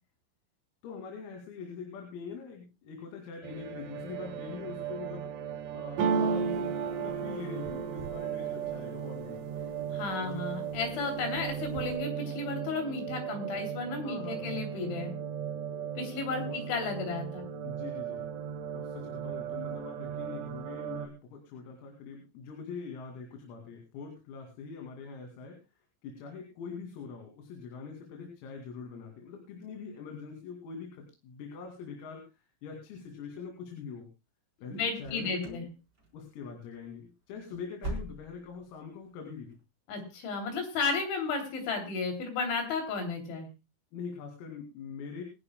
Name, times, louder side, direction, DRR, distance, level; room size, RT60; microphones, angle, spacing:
voice 1, 0.8-5.3 5.7-9.4 10.2-10.5 14.0-14.7 16.5-16.6 17.6-18.3 18.7-25.6 26.0-32.2 32.6-34.1 34.6-35.7 36.1-39.6 43.9-45.2, left 5 dB, 80° left, 2 dB, 5.2 m, -43 dB
sound 1, 3.4-21.1, right 9 dB, 70° right, 3.5 m, -38 dB
sound 2, 6.0-9.8 10.3-10.9 11.2-12.0, right 5 dB, 90° right, 1.9 m, -33 dB
voice 2, 9.9-15.1 16.0-17.4 34.7-35.6 39.9-43.5, left 4 dB, 65° left, 4 dB, 5.1 m, -33 dB
sound 3, 35.0-35.7 36.0-36.4 36.7-36.9 37.3-38.6 38.9-39.0 39.5-39.6, right 1 dB, 20° right, 4.1 m, -41 dB
27.0 x 10.5 x 2.2 m, 0.28 s
omnidirectional pair, 6.0 m